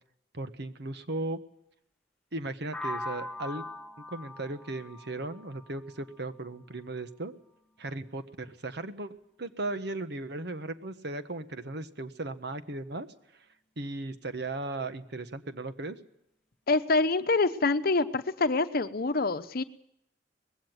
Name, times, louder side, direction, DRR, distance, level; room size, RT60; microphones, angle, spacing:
voice 1, 0.3-1.4 2.3-3.6 4.1-7.3 7.8-13.1 13.8-16.0, right 2 dB, 65° right, 10 dB, 1.5 m, -36 dB
sound 1, 2.7-6.6, left 2 dB, 5° left, 0.9 m, -41 dB
voice 2, 16.7-19.6, left 3 dB, 55° left, 11 dB, 0.9 m, -26 dB
20.0 x 16.0 x 9.2 m, 0.77 s
head